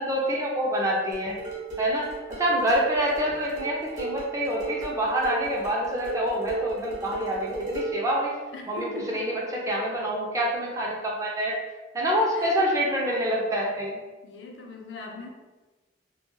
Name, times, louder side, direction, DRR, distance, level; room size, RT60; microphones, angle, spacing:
voice 1, 0.0-1.4 1.8-8.3 8.7-9.4 9.7-11.6 11.9-14.0, equal, 20° right, -3 dB, 0.4 m, -26 dB
sound 1, 1.1-8.1, right 4 dB, 45° right, 0.9 m, -35 dB
voice 2, 8.5-9.3 12.3-12.6 14.2-15.3, left 3 dB, 75° left, 2 dB, 0.4 m, -39 dB
2.3 x 2.2 x 3.0 m, 1.2 s
head